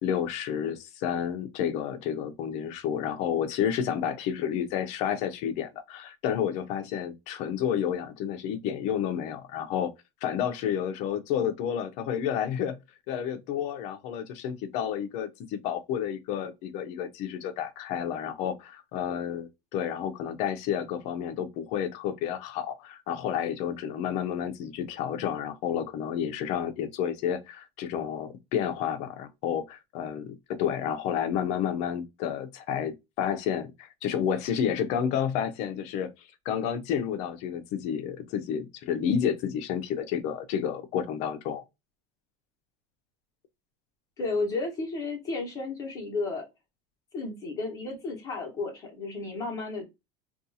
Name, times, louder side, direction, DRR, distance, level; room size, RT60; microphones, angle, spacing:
voice 1, 0.0-9.9 10.2-12.8 13.1-41.6, left 8 dB, 50° left, 0.5 m, -30 dB
voice 2, 44.2-46.5 47.1-49.8, left 3 dB, 20° left, 1.0 m, -33 dB
2.6 x 2.3 x 2.6 m
cardioid pair, 165°, 16 cm